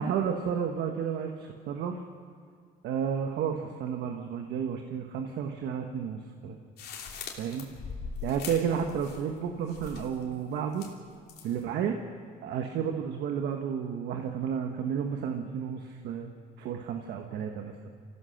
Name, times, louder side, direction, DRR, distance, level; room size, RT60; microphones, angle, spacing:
voice 1, 0.0-2.0 2.8-6.6 7.3-7.7 8.2-10.8 11.4-12.0 12.4-16.3 16.6-17.9, right 7 dB, 75° right, 4 dB, 1.5 m, -32 dB
sound 1, 6.8-9.4 9.7-10.2 10.7-11.6, left 5 dB, 70° left, 3.0 m, -41 dB
25.5 x 16.0 x 6.6 m, 2.2 s
cardioid pair, 110°, 17 cm